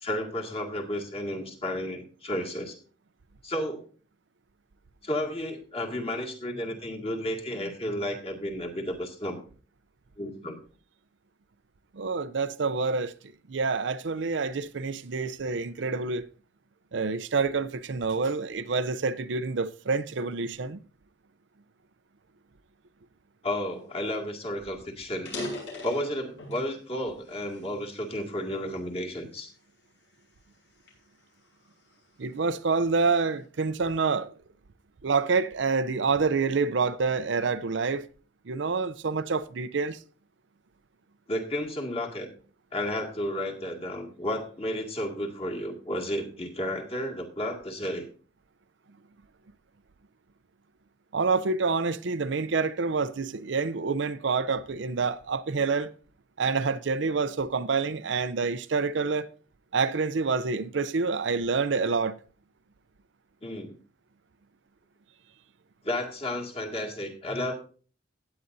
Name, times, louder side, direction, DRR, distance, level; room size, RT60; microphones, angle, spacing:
voice 1, 0.0-2.8 3.4-3.9 5.0-9.4 10.2-10.6 23.4-25.3 25.8-29.5 41.3-42.3 42.7-48.1 63.4-63.7 65.8-67.5, left 1 dB, 30° left, 2.1 m, -32 dB
voice 2, 12.0-13.1 13.5-16.2 16.9-20.8 32.2-34.3 35.0-38.0 38.5-40.0 51.1-55.9 56.4-59.3 59.7-62.2, right 4 dB, 65° right, 0.6 m, -27 dB
sound 1, 24.1-24.2 24.5-24.6 25.1-26.7 27.3-28.5 29.1-29.4 30.0-32.0, left 2 dB, 65° left, 6.4 m, -40 dB
15.5 x 9.8 x 2.7 m
head